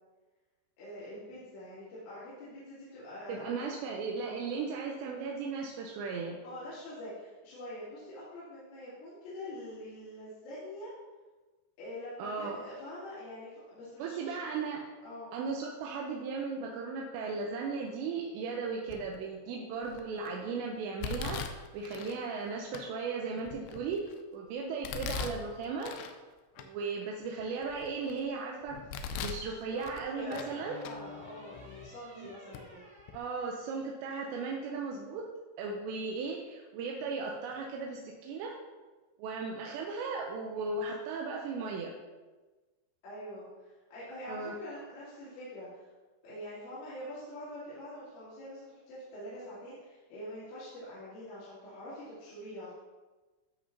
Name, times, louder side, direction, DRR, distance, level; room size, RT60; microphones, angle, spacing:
voice 1, 0.8-3.8 6.4-10.9 11.8-14.3 15.0-15.4 29.4-32.8 43.0-45.9 46.2-52.7, left 1 dB, 65° left, -12 dB, 4.9 m, -45 dB
voice 2, 3.3-6.4 12.2-12.6 14.0-14.8 15.3-26.0 26.6-28.8 29.2-30.8 32.2-32.3 33.1-35.3 35.6-38.5 39.2-42.0 44.3-44.5, right 4 dB, 80° right, -1 dB, 2.7 m, -36 dB
Domestic sounds home sounds, 18.9-19.3 19.8-20.3 21.0-22.2 22.7-22.8 23.4-24.2 24.8-26.2 26.6-26.7 27.2-28.2 28.7-29.5 29.8-30.5 30.8-31.0 31.8-31.9 32.5-32.6 33.0-33.2, left 5 dB, 85° left, 2.4 m, -40 dB
sound 1, 27.6-28.5 30.3-34.1, left 2 dB, 50° right, 0.8 m, -52 dB
14.0 x 4.9 x 2.8 m, 1.3 s
omnidirectional pair, 5.6 m